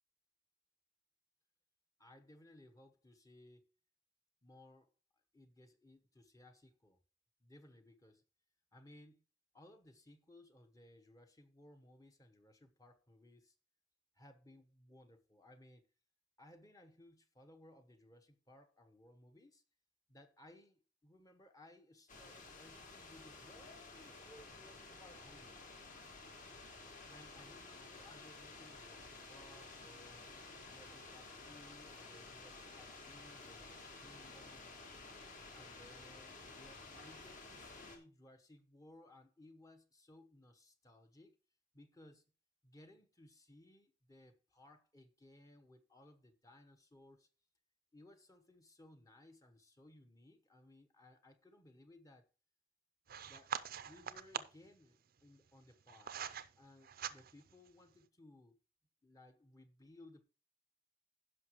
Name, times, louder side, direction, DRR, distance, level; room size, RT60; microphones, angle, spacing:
voice 1, 2.0-3.7 4.4-4.9 5.3-7.0 7.4-8.2 8.7-9.2 9.5-13.5 14.1-15.9 16.4-19.6 20.1-25.6 27.1-30.3 30.7-34.7 35.5-41.4 41.7-42.2 42.6-47.3 47.9-52.2 53.3-53.5 53.8-56.2 56.6-58.6 59.0-60.2, left 1 dB, 20° left, 1.0 m, -61 dB
sound 1, 22.1-38.0, left 3 dB, 45° left, 1.8 m, -53 dB
sound 2, 53.1-54.7 55.5-56.5 56.8-57.5, right 8 dB, 50° right, 0.5 m, -44 dB
16.0 x 5.7 x 3.0 m
head